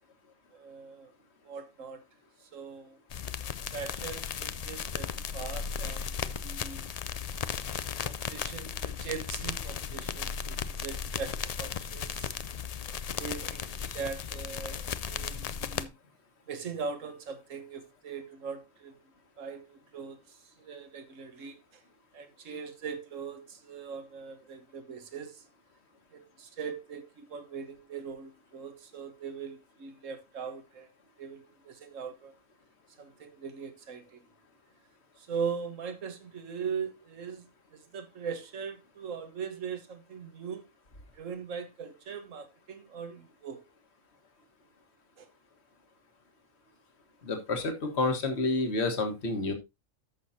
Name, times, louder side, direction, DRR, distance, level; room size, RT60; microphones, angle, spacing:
voice 1, 0.5-1.1 1.4-2.0 2.4-3.0 3.7-6.9 7.7-12.4 12.9-15.9 16.5-18.9 19.4-21.6 22.1-25.4 26.1-30.9 31.2-32.3 33.0-34.2 35.2-40.7 41.1-43.6 45.2-45.3, right 6 dB, 75° right, 1.6 m, -40 dB
sound 1, 3.1-15.8, left 7 dB, 75° left, 0.3 m, -36 dB
voice 2, 47.2-49.5, left 3 dB, 55° left, 1.8 m, -29 dB
13.5 x 6.3 x 2.7 m
omnidirectional pair, 1.3 m